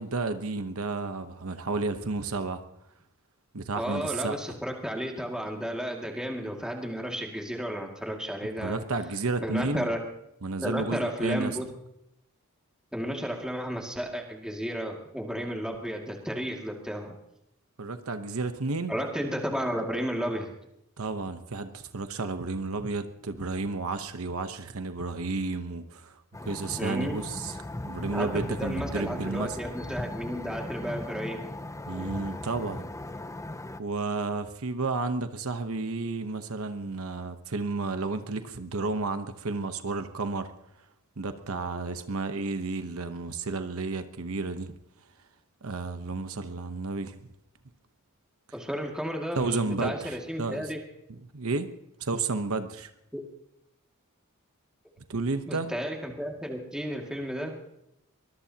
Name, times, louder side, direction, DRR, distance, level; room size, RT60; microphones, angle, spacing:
voice 1, 0.0-2.6 3.5-4.4 8.6-9.9 10.4-11.6 17.8-18.9 21.0-27.6 27.8-29.6 31.9-32.9 33.8-40.5 41.2-44.8 45.6-47.2 49.3-50.7 51.1-51.7 52.0-52.9 55.1-55.7, right 3 dB, 75° right, 8 dB, 1.0 m, -32 dB
voice 2, 3.8-8.8 9.4-10.0 10.6-11.7 12.9-17.2 18.9-20.5 26.8-27.2 28.1-31.4 48.5-50.8 53.1-53.2 55.5-57.6, equal, 5° right, 0 dB, 2.2 m, -33 dB
sound 1, 26.3-33.8, left 1 dB, 15° left, 0.5 m, -38 dB
23.5 x 21.0 x 2.9 m, 0.82 s
head